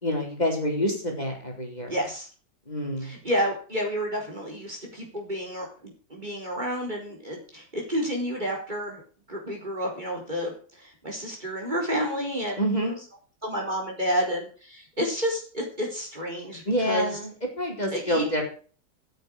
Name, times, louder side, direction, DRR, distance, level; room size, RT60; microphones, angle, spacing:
voice 1, 0.0-1.9 2.7-3.1 12.6-13.0 16.7-18.4, equal, 25° left, 0 dB, 4.2 m, -27 dB
voice 2, 1.9-2.3 3.0-9.0 9.3-12.6 13.4-17.2 17.9-18.3, equal, 25° right, 0 dB, 4.5 m, -30 dB
13.0 x 9.2 x 6.4 m, 0.40 s
omnidirectional pair, 1.9 m